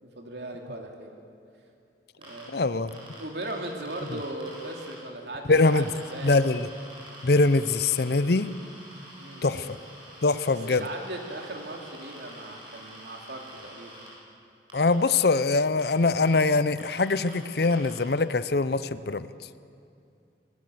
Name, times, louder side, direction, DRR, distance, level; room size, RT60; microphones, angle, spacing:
voice 1, 0.0-1.1 2.2-2.6 3.2-6.5 9.1-9.7 10.5-14.1, right 1 dB, 65° right, 2 dB, 2.9 m, -38 dB
sound 1, 2.2-2.4 2.9-4.9 5.5-14.1 14.7-15.1 15.8-15.9 16.2-16.3 16.8-17.3 17.6-18.0, right 1 dB, 25° right, 7.8 m, -47 dB
voice 2, 2.5-3.0 5.5-5.9 6.2-6.7 7.2-8.5 9.4-9.7 10.2-10.8 14.7-19.3, left 3 dB, 60° left, 14 dB, 0.6 m, -23 dB
25.5 x 18.5 x 7.9 m, 2.5 s
head